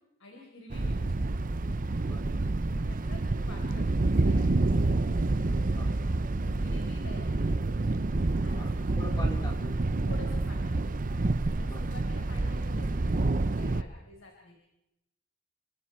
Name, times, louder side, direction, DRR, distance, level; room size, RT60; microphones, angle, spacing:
voice 1, 0.2-1.2 2.8-3.9 4.2-4.7 6.4-7.7 8.4-9.3 10.0-11.0 11.5-14.6, left 2 dB, 75° left, 0 dB, 4.4 m, -49 dB
Thunder, 0.7-13.8, right 2 dB, 45° right, 0.7 m, -28 dB
voice 2, 2.0-2.3 5.7-6.0 8.5-9.8 11.6-11.9, left 1 dB, 20° left, 1 dB, 3.8 m, -43 dB
30.0 x 24.5 x 4.5 m, 0.88 s
head